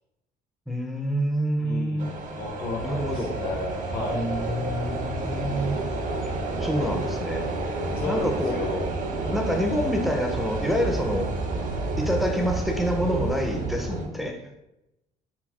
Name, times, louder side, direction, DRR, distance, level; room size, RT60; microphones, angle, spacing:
voice 1, 0.7-2.1 2.8-3.3 4.1-5.8 6.6-7.5 8.1-8.6 9.3-11.4 12.0-14.4, equal, ahead, 2 dB, 0.4 m, -27 dB
voice 2, 1.6-4.3 7.8-8.9 9.2-9.4, left 3 dB, 65° left, -3 dB, 0.8 m, -33 dB
sound 1, 2.0-14.1, right 2 dB, 50° right, 0.5 m, -30 dB
4.1 x 2.0 x 2.3 m, 0.89 s
cardioid pair, 110°, 17 cm